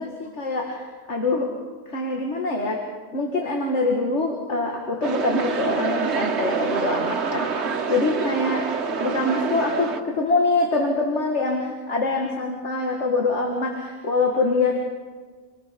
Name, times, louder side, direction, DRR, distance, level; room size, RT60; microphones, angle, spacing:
voice 1, 0.0-1.5 1.9-2.8 3.1-8.7 9.0-14.8, left 3 dB, 75° left, 1 dB, 2.2 m, -24 dB
sound 1, 5.0-10.0, right 5 dB, 70° right, 1.4 m, -26 dB
26.0 x 19.5 x 5.3 m, 1.5 s
omnidirectional pair, 1.2 m